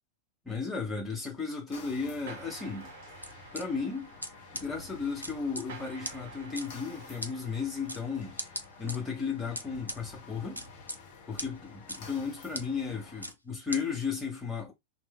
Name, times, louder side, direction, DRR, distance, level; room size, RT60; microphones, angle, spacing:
voice 1, 0.4-2.9 3.5-4.1 4.6-8.4 8.8-10.6 11.3-14.7, left 5 dB, 15° left, 1.2 m, -34 dB
sound 1, 1.7-13.3, left 4 dB, 50° left, 0.8 m, -50 dB
sound 2, 2.3-9.1, right 5 dB, 60° right, 0.6 m, -52 dB
sound 3, 3.2-3.6 4.2-4.3 4.5-4.6 5.2-5.6 6.0-6.1 6.6-6.7 7.2-7.3 7.9-8.0 8.4-9.0 9.6-10.0 10.6-11.0 11.4-11.5 11.9-12.0 12.5-12.6 13.2-13.3 13.7-13.8, equal, 90° left, 0.4 m, -37 dB
2.6 x 2.1 x 3.7 m
figure-of-eight pair, 90°, 0 cm